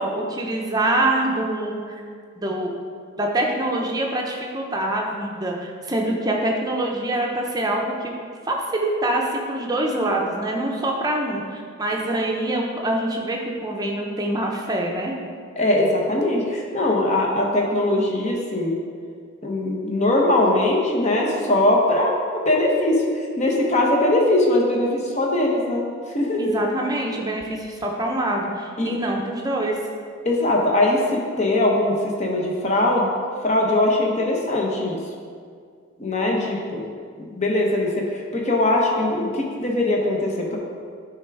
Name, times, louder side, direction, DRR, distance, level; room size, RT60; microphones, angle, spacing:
voice 1, 0.0-2.0 2.4-2.8 3.2-8.2 8.4-15.2 26.4-29.8, right 1 dB, 20° right, 0 dB, 0.7 m, -25 dB
voice 2, 15.6-18.7 19.4-25.8 26.1-26.5 28.8-28.9 30.2-33.1 33.4-35.0 36.0-36.8 37.2-40.6, left 1 dB, 30° left, -1 dB, 1.0 m, -21 dB
9.5 x 3.5 x 4.7 m, 2.1 s
head